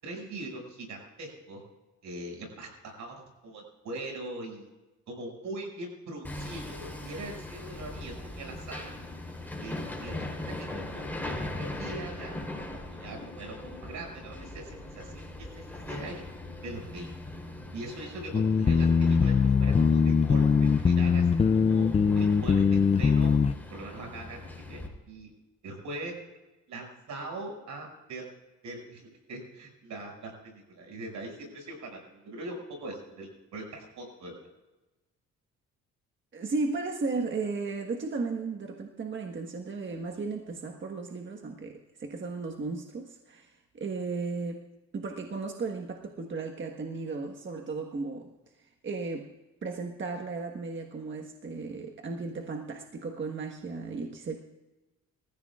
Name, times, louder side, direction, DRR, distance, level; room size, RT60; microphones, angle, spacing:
voice 1, 0.0-1.6 2.0-4.7 5.1-8.9 9.6-12.4 12.9-16.2 16.6-17.1 17.7-21.9 22.1-23.3 23.7-24.8 25.1-25.3 25.6-26.1 26.7-28.3 28.6-34.3, right 2 dB, 70° right, 1 dB, 6.4 m, -41 dB
Hammer, 6.2-24.9, left 2 dB, 5° left, 3.6 m, -40 dB
sound 1, 18.3-23.6, left 5 dB, 20° left, 0.4 m, -22 dB
voice 2, 36.3-44.6 44.9-48.3 48.8-49.3 49.6-54.4, right 4 dB, 40° right, 2 dB, 1.5 m, -35 dB
26.0 x 15.0 x 2.5 m, 1.1 s
cardioid pair, 90°, 30 cm